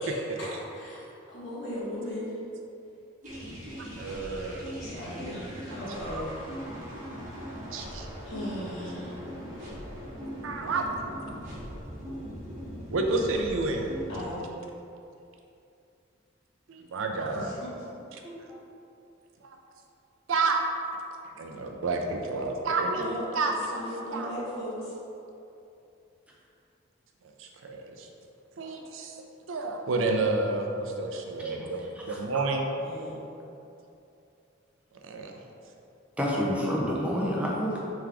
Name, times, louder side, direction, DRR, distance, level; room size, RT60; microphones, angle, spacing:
voice 1, 0.0-2.4 4.8-6.4 8.2-9.2 14.1-14.5 17.3-17.8 18.2-18.3 22.9-24.9 32.8-33.2 37.7-37.9, equal, 70° left, -8 dB, 1.4 m, -37 dB
sound 1, 3.2-14.3, equal, 40° right, 1.3 m, -40 dB
voice 2, 4.0-4.7 7.7-8.1 10.4-10.8 12.9-13.9 16.7-17.5 18.1-18.2 19.4-19.6 20.3-20.6 21.4-23.9 24.1-24.3 27.4-28.1 28.6-29.1 29.5-32.7 35.0-35.4, right 3 dB, 80° right, 2 dB, 0.5 m, -30 dB
voice 3, 31.4-32.2 32.5-32.6 36.2-37.8, equal, 5° right, -4 dB, 0.5 m, -29 dB
3.5 x 3.4 x 3.4 m, 2.7 s
head